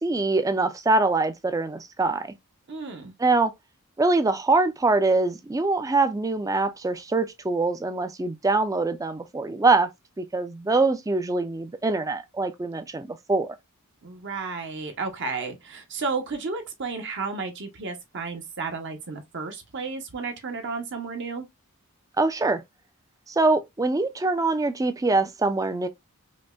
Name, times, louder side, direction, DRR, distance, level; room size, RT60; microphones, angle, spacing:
voice 1, 0.0-2.3 3.2-3.5 4.0-9.9 10.2-13.5 22.2-22.6 23.3-25.9, right 3 dB, 15° right, 0.3 m, -24 dB
voice 2, 2.7-3.1 14.0-21.5, right 4 dB, 55° right, 0.7 m, -32 dB
5.0 x 2.1 x 2.2 m
head